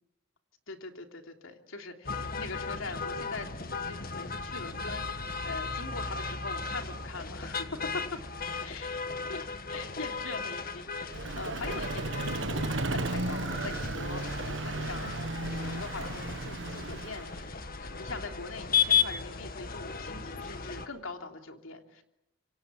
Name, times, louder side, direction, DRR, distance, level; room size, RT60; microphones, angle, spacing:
voice 1, 0.7-3.5 3.8-8.2 8.6-9.0 9.3-9.4 9.7-15.1 15.5-22.0, left 3 dB, 85° left, 4 dB, 3.2 m, -42 dB
sound 1, 2.0-20.9, left 6 dB, 45° left, 1.8 m, -35 dB
Vehicle, 11.1-17.5, right 2 dB, 65° right, 1.4 m, -34 dB
26.5 x 26.0 x 7.6 m, 0.84 s
head